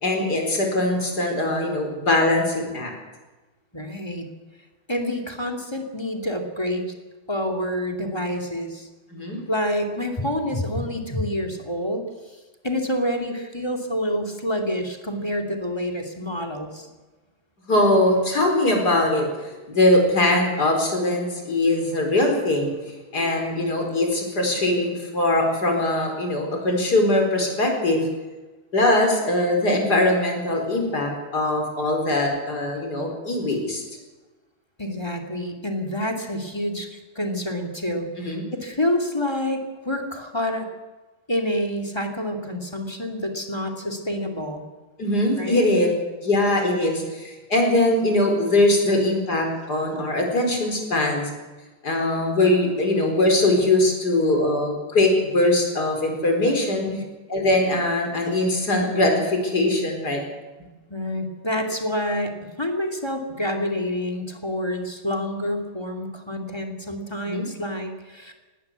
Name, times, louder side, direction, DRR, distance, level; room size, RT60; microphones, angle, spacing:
voice 1, 0.0-2.9 9.1-9.4 17.7-28.1 28.7-33.8 38.2-38.4 45.0-45.9 46.2-51.3 51.8-56.9 57.3-60.2 67.3-67.5, left 1 dB, 50° left, 3 dB, 5.0 m, -21 dB
voice 2, 3.7-4.3 4.9-6.9 7.3-8.9 9.5-12.4 12.6-16.9 34.8-40.7 41.3-44.6 45.4-45.7 56.9-57.1 60.9-68.3, left 1 dB, 10° left, 5 dB, 2.4 m, -28 dB
19.0 x 17.0 x 8.2 m, 1.2 s
omnidirectional pair, 2.2 m